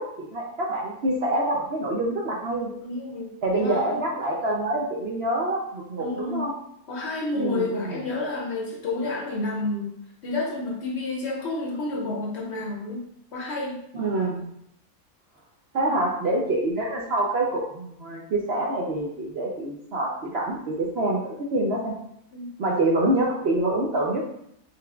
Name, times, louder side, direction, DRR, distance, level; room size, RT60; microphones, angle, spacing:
voice 1, 0.0-2.7 3.4-6.5 7.3-8.0 13.9-14.4 15.7-21.9 22.6-24.2, right 1 dB, 60° right, -2 dB, 0.7 m, -26 dB
voice 2, 2.8-3.3 3.6-4.1 6.0-6.5 6.9-10.0 10.2-13.8 15.8-16.0 22.3-22.5, left 2 dB, 55° left, 0 dB, 0.9 m, -30 dB
5.7 x 3.4 x 2.3 m, 0.74 s
omnidirectional pair, 1.5 m